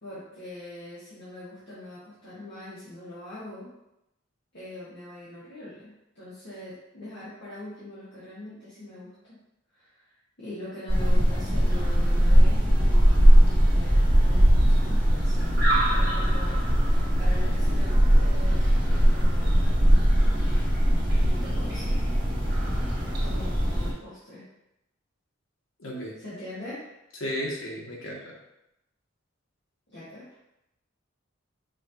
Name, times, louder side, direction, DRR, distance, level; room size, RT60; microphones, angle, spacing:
voice 1, 0.0-3.7 4.5-9.4 9.7-10.0 10.4-15.6 15.9-22.0 23.2-24.4 26.2-26.8 29.9-30.3, left 1 dB, 65° left, -13 dB, 1.7 m, -42 dB
sound 1, 10.9-23.9, equal, 55° right, 1.7 m, -20 dB
voice 2, 25.8-26.1 27.2-28.3, equal, 85° left, -3 dB, 1.3 m, -33 dB
6.1 x 2.9 x 2.9 m, 0.85 s
head